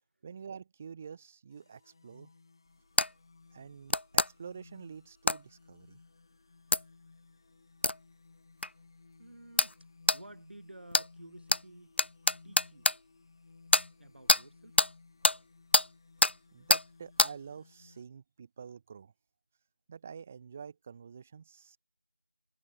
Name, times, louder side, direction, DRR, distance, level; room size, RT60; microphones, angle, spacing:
voice 1, 0.2-2.3 3.5-6.0 16.5-19.1 19.9-21.8, right 6 dB, 10° right, 1.1 m, -47 dB
sound 1, 1.5-18.0, left 4 dB, 20° left, 4.9 m, -59 dB
voice 2, 2.8-3.1 9.2-12.0 12.4-12.9 14.0-14.8, right 1 dB, 60° right, 7.7 m, -53 dB
sound 2, 3.0-3.1 3.9-4.3 5.3-5.4 6.7-6.8 7.8-8.0 8.6-8.7 9.6-9.7 10.1-10.2 10.9-11.1 11.5-11.6 12.0-13.0 13.7-13.9 14.3-14.4 14.8-14.9 15.2-15.4 15.7-15.9 16.2-16.3 16.7-16.8 17.2-17.3, left 2 dB, 65° left, 0.5 m, -24 dB
figure-of-eight pair, 175°, 7 cm